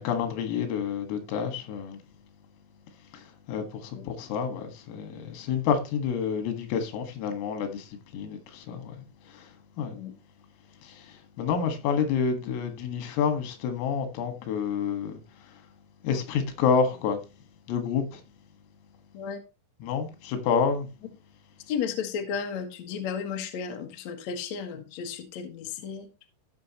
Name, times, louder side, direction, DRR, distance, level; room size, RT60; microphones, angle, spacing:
voice 1, 0.0-2.0 3.1-9.0 9.3-9.5 9.8-10.0 10.8-15.2 16.0-17.2 17.7-18.2 19.8-20.9, left 6 dB, 90° left, 4.4 m, -29 dB
voice 2, 21.7-26.1, left 7 dB, 65° left, 1.8 m, -33 dB
15.5 x 6.5 x 3.0 m
omnidirectional pair, 5.8 m